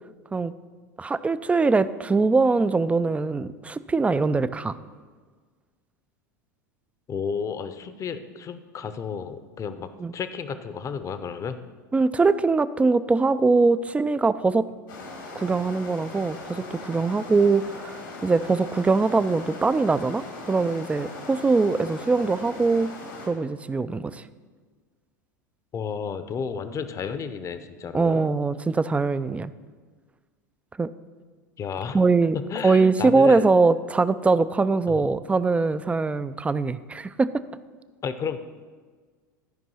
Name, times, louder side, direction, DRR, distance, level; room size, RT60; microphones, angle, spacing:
voice 1, 1.0-4.8 10.0-10.1 11.9-14.7 15.4-20.2 20.5-22.9 23.3-24.2 27.9-29.5 30.8-30.9 31.9-32.4 32.6-37.3, right 3 dB, 10° right, 15 dB, 0.3 m, -22 dB
voice 2, 7.1-11.6 25.7-28.2 31.6-32.0 32.3-33.5 34.9-35.1 38.0-38.4, left 6 dB, 30° left, 11 dB, 0.7 m, -32 dB
sound 1, 14.9-23.3, left 3 dB, 85° left, 2.3 m, -39 dB
13.0 x 5.2 x 5.6 m, 1.5 s
hypercardioid pair, 85°, 10 cm